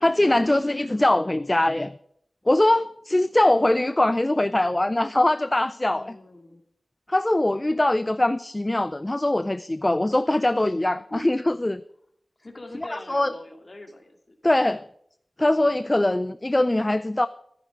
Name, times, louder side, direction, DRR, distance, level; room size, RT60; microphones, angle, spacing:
voice 1, 0.0-1.9 2.5-6.2 7.1-11.8 12.8-13.3 14.4-14.8 15.4-17.3, left 1 dB, 25° left, 14 dB, 0.4 m, -22 dB
voice 2, 5.9-6.6 11.1-11.3 12.4-14.3, left 1 dB, 40° left, 4 dB, 2.4 m, -43 dB
13.0 x 11.0 x 5.2 m, 0.69 s
wide cardioid pair, 60°, 0 cm